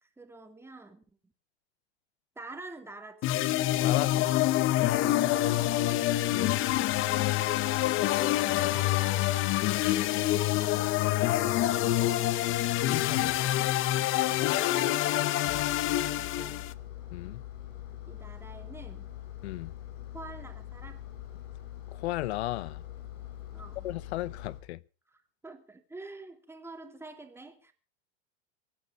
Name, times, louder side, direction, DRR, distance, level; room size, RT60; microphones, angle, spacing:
voice 1, 0.0-1.3 2.4-3.2 5.4-5.7 6.9-7.8 8.8-11.8 14.4-15.0 15.8-16.7 18.1-19.1 20.1-21.0 23.5-23.9 25.1-27.7, right 3 dB, 10° right, 2.6 m, -48 dB
sound 1, 3.2-16.7, left 15 dB, 40° left, 0.9 m, -26 dB
voice 2, 3.8-4.3 6.3-6.6 8.5-8.8 12.8-13.4 15.4-15.6 17.1-17.4 19.4-19.7 21.9-22.8 23.8-24.8, left 16 dB, 85° left, 0.8 m, -35 dB
Engine, 15.5-24.6, left 12 dB, 60° left, 5.7 m, -43 dB
24.5 x 9.6 x 5.3 m
supercardioid pair, 130°, 32 cm